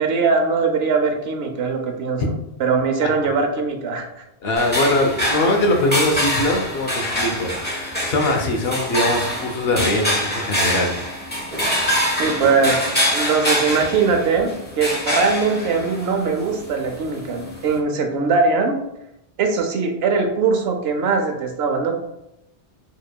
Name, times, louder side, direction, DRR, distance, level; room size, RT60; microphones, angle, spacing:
voice 1, 0.0-2.2 2.6-4.1 12.2-12.8 13.1-14.5 14.8-18.8 19.4-21.9, right 4 dB, 80° right, 4 dB, 0.9 m, -20 dB
voice 2, 4.4-10.9, left 1 dB, 75° left, 2 dB, 0.9 m, -22 dB
sound 1, 4.6-17.8, equal, 10° left, 1.1 m, -25 dB
4.6 x 3.2 x 2.2 m, 0.85 s
omnidirectional pair, 1.0 m